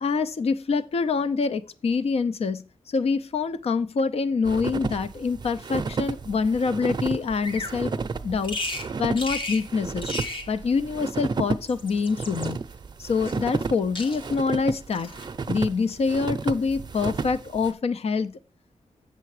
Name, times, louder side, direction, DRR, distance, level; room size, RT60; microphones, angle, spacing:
voice 1, 0.0-7.9 8.2-8.6 9.0-10.1 10.5-12.6 13.0-15.1 15.5-18.3, left 4 dB, 65° left, 12 dB, 0.6 m, -25 dB
sound 1, 4.5-17.7, right 4 dB, 40° right, 0.5 m, -32 dB
Bird vocalization bird call bird song, 7.4-7.8 8.4-8.9 9.2-9.6 10.0-10.5 11.5-12.5 13.3-13.7 13.9-14.4 14.9-15.3, left 2 dB, 50° left, 1.3 m, -34 dB
7.5 x 6.7 x 4.8 m, 0.34 s
wide cardioid pair, 165°, 11 cm